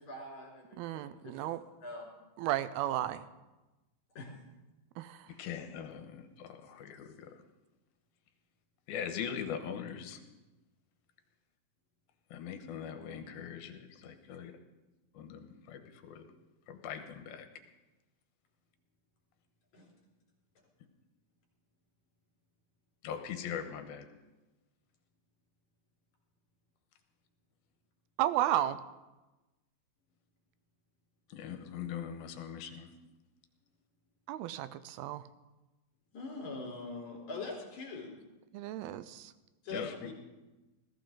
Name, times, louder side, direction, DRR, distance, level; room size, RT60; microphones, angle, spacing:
voice 1, 0.0-1.5 1.8-2.1 4.2-4.3 19.7-19.9 36.1-38.1 39.6-40.1, left 3 dB, 50° left, -2 dB, 5.1 m, -43 dB
voice 2, 0.8-1.6 2.4-3.3 5.0-5.3 28.2-28.8 34.3-35.2 38.5-39.3, right 13 dB, 90° right, 14 dB, 2.6 m, -33 dB
voice 3, 5.3-7.3 8.9-10.2 12.3-14.5 15.1-16.2 16.7-17.5 23.0-24.1 31.3-32.9 39.7-40.1, left 8 dB, 85° left, 7 dB, 3.0 m, -41 dB
20.0 x 15.0 x 3.9 m, 1.1 s
omnidirectional pair, 4.3 m